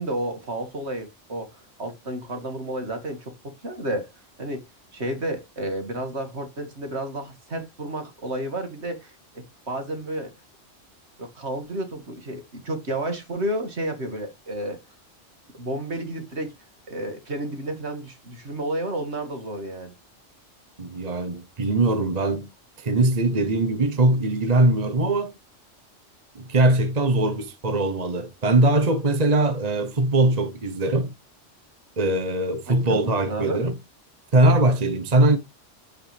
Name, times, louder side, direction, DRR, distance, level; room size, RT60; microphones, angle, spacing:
voice 1, 0.0-4.1 4.4-4.6 4.9-10.3 11.2-14.8 15.6-16.5 16.9-19.9 32.7-33.6, right 1 dB, 60° right, 2.5 m, -31 dB
voice 2, 20.8-22.5 22.8-25.3 26.3-31.1 32.0-33.7 34.3-35.4, right 2 dB, 35° right, 1.1 m, -21 dB
9.2 x 7.8 x 3.4 m
omnidirectional pair, 1.3 m